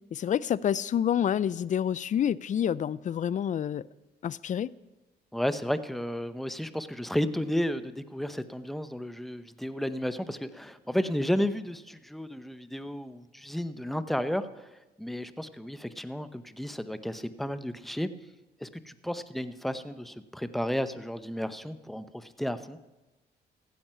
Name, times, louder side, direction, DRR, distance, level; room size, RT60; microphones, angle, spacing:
voice 1, 0.1-3.8 4.2-4.7, left 9 dB, 45° left, 0.4 m, -28 dB
voice 2, 5.3-18.1 18.6-22.8, equal, ahead, 0.7 m, -33 dB
15.0 x 9.4 x 5.6 m
cardioid pair, 95°, 18 cm